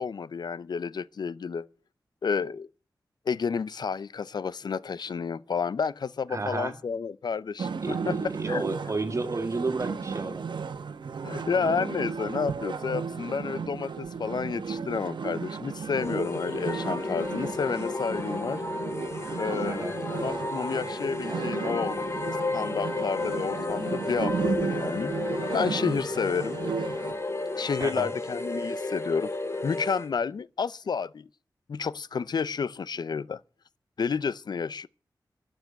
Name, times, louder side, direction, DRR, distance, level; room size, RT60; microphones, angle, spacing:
voice 1, 0.0-1.7 2.2-2.7 3.3-8.2 8.5-8.6 11.2-18.6 19.4-19.9 20.1-22.0 22.5-25.1 25.5-26.6 27.5-29.4 29.6-31.3 31.7-33.4 34.0-34.9, left 5 dB, 65° left, 0.6 m, -30 dB
voice 2, 6.3-6.8 7.7-10.5 19.6-19.9 27.8-28.1, right 3 dB, 40° right, 2.0 m, -32 dB
sound 1, 7.6-27.1, right 5 dB, 90° right, 1.3 m, -34 dB
sound 2, 15.9-30.1, left 2 dB, 35° left, 1.5 m, -33 dB
11.5 x 9.2 x 7.9 m
wide cardioid pair, 115°, 8 cm